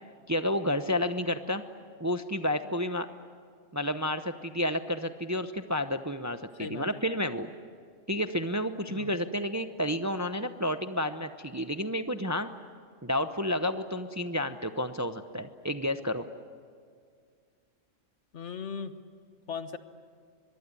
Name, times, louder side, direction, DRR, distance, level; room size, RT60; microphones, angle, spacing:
voice 1, 0.3-1.6 2.0-3.1 3.7-7.5 8.1-12.5 13.0-16.3, left 1 dB, 15° right, 9 dB, 0.7 m, -30 dB
voice 2, 6.5-7.0 8.9-9.2 18.3-18.9 19.5-19.8, left 6 dB, 65° left, 10 dB, 1.5 m, -38 dB
23.5 x 22.0 x 9.8 m, 2.1 s
omnidirectional pair, 1.3 m